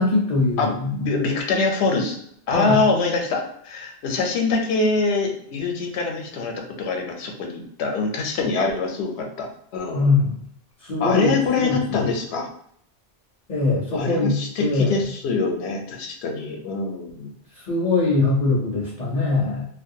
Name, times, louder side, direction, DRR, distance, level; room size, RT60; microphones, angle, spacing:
voice 1, 0.0-1.1 2.5-2.8 9.9-10.3 10.8-12.0 13.5-15.0 17.7-19.6, left 3 dB, 50° left, -4 dB, 0.6 m, -22 dB
voice 2, 0.6-2.2 2.5-9.5 9.7-10.1 11.0-12.5 13.9-17.3, left 3 dB, 80° left, 2 dB, 0.8 m, -24 dB
2.4 x 2.2 x 2.6 m, 0.68 s
omnidirectional pair, 1.1 m